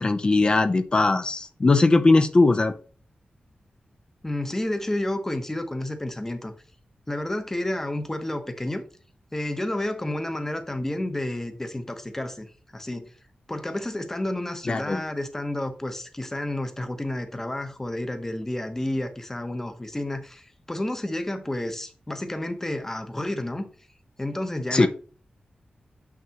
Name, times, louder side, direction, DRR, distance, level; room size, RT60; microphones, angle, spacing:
voice 1, 0.0-2.8 14.7-15.0 24.7-24.9, left 3 dB, 30° left, 0.5 m, -20 dB
voice 2, 4.2-6.5 7.1-8.8 9.3-13.1 13.5-23.6 24.2-24.9, left 1 dB, 15° left, 0.9 m, -30 dB
7.2 x 6.0 x 2.9 m
wide cardioid pair, 155°, 3 cm